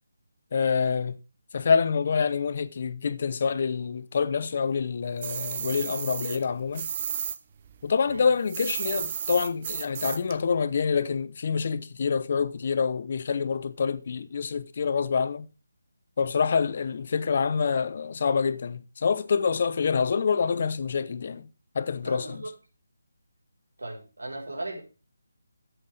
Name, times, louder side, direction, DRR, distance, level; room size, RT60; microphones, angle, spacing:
voice 1, 0.5-1.2 1.5-6.9 7.8-15.5 16.2-21.4 21.7-22.4, left 6 dB, 45° left, 0.7 m, -26 dB
sound 1, 5.2-7.4 7.7-10.4, right 8 dB, 30° right, 0.7 m, -33 dB
voice 2, 22.0-22.5 23.8-24.8, right 2 dB, 90° right, 4.0 m, -37 dB
11.5 x 7.9 x 3.3 m
figure-of-eight pair, 165°, 0 cm